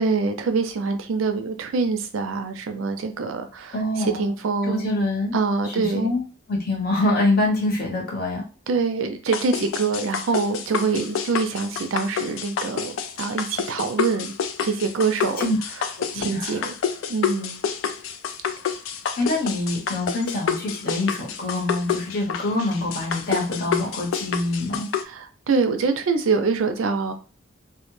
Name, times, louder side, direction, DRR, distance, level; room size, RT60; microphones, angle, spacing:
voice 1, 0.0-5.0 5.3-6.2 8.7-14.3 14.6-15.4 16.1-16.7 17.1-17.6 25.0-27.1, right 4 dB, 90° right, 7 dB, 0.4 m, -25 dB
voice 2, 3.7-4.3 4.7-5.3 5.8-6.2 6.5-8.4 15.4-15.6 16.0-16.6 19.2-24.9, left 2 dB, 50° left, -2 dB, 0.9 m, -25 dB
sound 1, 9.3-25.0, left 7 dB, 80° left, 0.3 m, -28 dB
2.2 x 2.1 x 3.0 m, 0.35 s
head